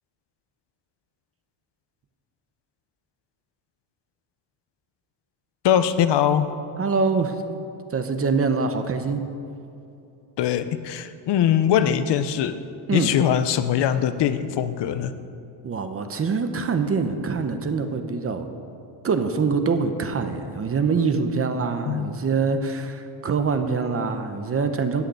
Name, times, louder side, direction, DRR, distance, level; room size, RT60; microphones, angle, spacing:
voice 1, 5.6-6.5 10.4-12.6 12.9-15.1 21.9-22.2, left 9 dB, 65° left, 11 dB, 0.8 m, -22 dB
voice 2, 6.8-7.4 7.9-9.2 12.9-13.1 15.6-18.5 19.0-25.0, right 5 dB, 30° right, 7 dB, 0.9 m, -24 dB
14.5 x 6.6 x 9.6 m, 2.7 s
cardioid pair, 155°, 46 cm